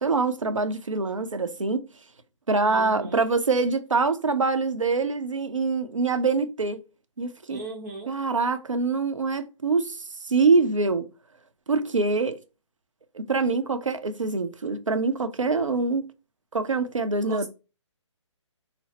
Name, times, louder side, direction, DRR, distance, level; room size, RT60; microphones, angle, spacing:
voice 1, 0.0-1.9 2.5-6.8 7.2-7.6 8.1-11.1 11.7-12.4 13.1-16.1 16.5-17.5, right 4 dB, 85° right, 0.7 m, -24 dB
voice 2, 2.6-3.2 7.5-8.1 17.3-17.5, right 3 dB, 35° right, 0.8 m, -36 dB
5.8 x 2.0 x 4.3 m
figure-of-eight pair, 140°, 16 cm